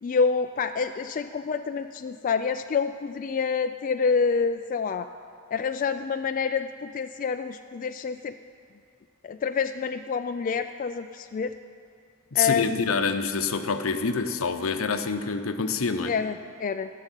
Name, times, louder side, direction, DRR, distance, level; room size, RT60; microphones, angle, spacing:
voice 1, 0.0-5.1 5.5-8.3 9.2-11.5 12.3-13.0 16.1-16.9, left 5 dB, 40° left, 7 dB, 0.3 m, -27 dB
voice 2, 12.3-16.1, left 5 dB, 75° left, 8 dB, 0.8 m, -26 dB
15.0 x 6.6 x 9.0 m, 2.4 s
head